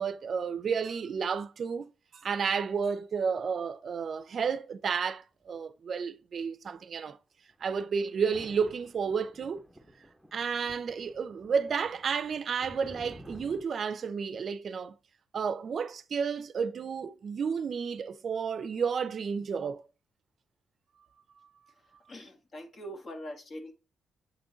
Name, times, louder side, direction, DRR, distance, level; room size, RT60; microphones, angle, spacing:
voice 1, 0.0-7.2 7.6-9.6 10.3-14.9 15.3-19.8, right 6 dB, 50° right, 0.5 m, -31 dB
sound 1, 7.5-13.6, equal, 5° right, 0.8 m, -52 dB
voice 2, 22.1-23.7, equal, 45° left, 1.5 m, -42 dB
7.7 x 3.7 x 3.9 m
cardioid pair, 120°, 0 cm